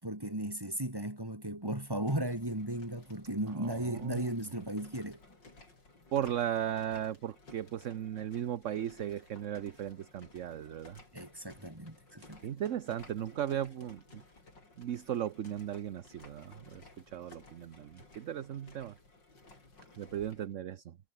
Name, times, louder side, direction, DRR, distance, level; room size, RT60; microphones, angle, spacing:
voice 1, 0.0-5.2 11.1-12.4, right 1 dB, 10° right, 4.4 m, -36 dB
sound 1, 1.7-20.5, left 2 dB, 85° left, 6.8 m, -57 dB
voice 2, 3.5-4.3 6.1-11.0 12.4-14.2 14.8-19.0 20.0-21.0, right 10 dB, 55° right, 1.0 m, -36 dB
omnidirectional pair, 1.9 m